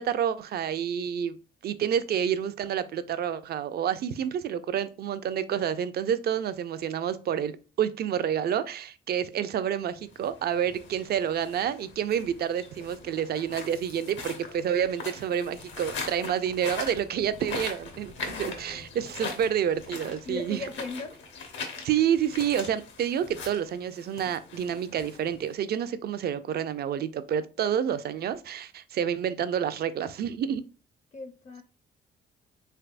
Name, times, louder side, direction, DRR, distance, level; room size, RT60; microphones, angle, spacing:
voice 1, 0.0-1.4 1.6-20.6 21.8-30.6, right 9 dB, 55° right, 0.4 m, -29 dB
sound 1, 10.0-25.7, left 4 dB, 70° left, 0.9 m, -41 dB
voice 2, 18.3-19.3 20.3-21.2 31.1-31.6, left 3 dB, 35° left, 0.5 m, -39 dB
3.3 x 3.2 x 2.4 m
cardioid pair, 90°, 20 cm